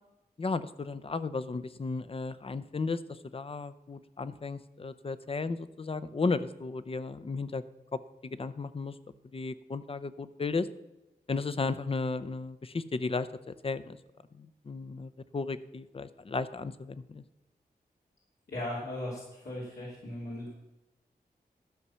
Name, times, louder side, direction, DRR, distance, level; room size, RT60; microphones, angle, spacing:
voice 1, 0.4-7.6 7.9-8.9 9.3-10.7 11.3-14.0 14.3-17.2, left 4 dB, 35° left, 14 dB, 0.6 m, -34 dB
voice 2, 18.5-20.5, left 1 dB, 85° left, -7 dB, 2.8 m, -38 dB
13.0 x 6.0 x 5.6 m, 0.99 s
wide cardioid pair, 75°, 16 cm